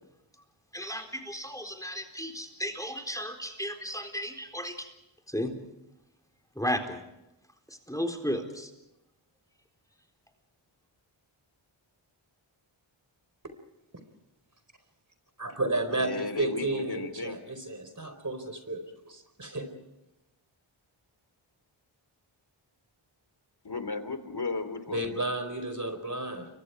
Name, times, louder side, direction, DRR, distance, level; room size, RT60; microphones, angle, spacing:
voice 1, 0.7-4.9 5.3-5.5 6.5-7.0 7.7-8.7, equal, 5° left, 6 dB, 4.1 m, -34 dB
voice 2, 15.4-19.7 24.9-26.5, right 2 dB, 35° right, 9 dB, 4.7 m, -32 dB
voice 3, 15.9-17.4 23.6-25.0, left 3 dB, 50° left, 10 dB, 3.1 m, -35 dB
29.5 x 24.0 x 4.8 m, 0.92 s
cardioid pair, 50°, 50 cm